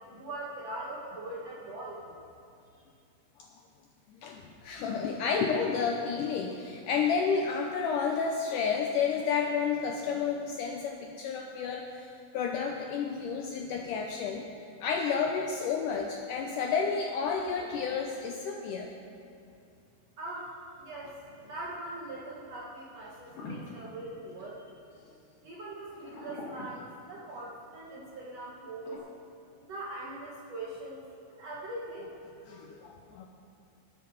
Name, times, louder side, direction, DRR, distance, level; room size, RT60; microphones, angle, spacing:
voice 1, 0.1-2.0 20.2-20.5 20.8-24.7 25.4-29.0 29.6-31.0 31.3-32.1, right 2 dB, 65° right, -5 dB, 1.6 m, -41 dB
voice 2, 4.2-18.9 23.7-23.8 32.5-33.3, left 6 dB, 85° left, 2 dB, 1.9 m, -31 dB
sound 1, 23.3-24.8 25.9-27.5 28.8-29.0, left 2 dB, 65° left, 3.4 m, -43 dB
20.0 x 7.4 x 4.0 m, 2.5 s
omnidirectional pair, 4.4 m